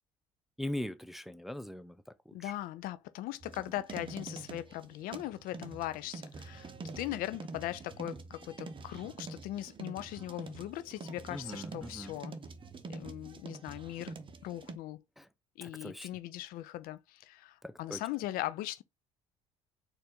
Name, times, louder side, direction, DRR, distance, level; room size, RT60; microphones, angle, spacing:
voice 1, 0.6-2.5 11.3-12.1 15.2-15.3 15.6-16.1 17.6-18.0, left 1 dB, ahead, 0.4 m, -41 dB
voice 2, 2.3-12.3 12.9-14.1 14.4-15.0 15.6-18.8, left 14 dB, 65° left, 0.4 m, -39 dB
sound 1, 3.4-14.8, right 3 dB, 35° right, 0.7 m, -46 dB
4.1 x 2.5 x 3.7 m
hypercardioid pair, 60°, 16 cm